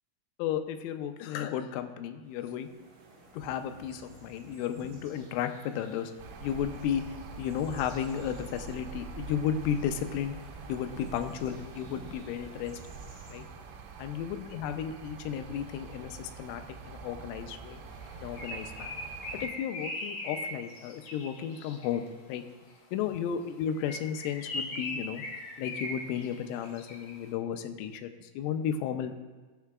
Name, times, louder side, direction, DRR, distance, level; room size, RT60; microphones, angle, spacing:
voice 1, 0.4-2.7 3.3-6.1 6.4-7.1 7.4-10.4 10.7-12.8 13.3-13.4 14.0-17.8 18.2-19.0 19.4-22.4 22.9-25.2 25.6-29.1, left 9 dB, 85° left, 8 dB, 3.1 m, -34 dB
sound 1, 2.2-13.4, right 2 dB, 55° right, 4.0 m, -55 dB
sound 2, 6.2-19.5, right 5 dB, 80° right, 2.8 m, -45 dB
Bird, 18.0-22.1 23.7-27.2, left 1 dB, 65° left, 2.4 m, -40 dB
20.0 x 6.7 x 2.4 m, 1.4 s
omnidirectional pair, 5.7 m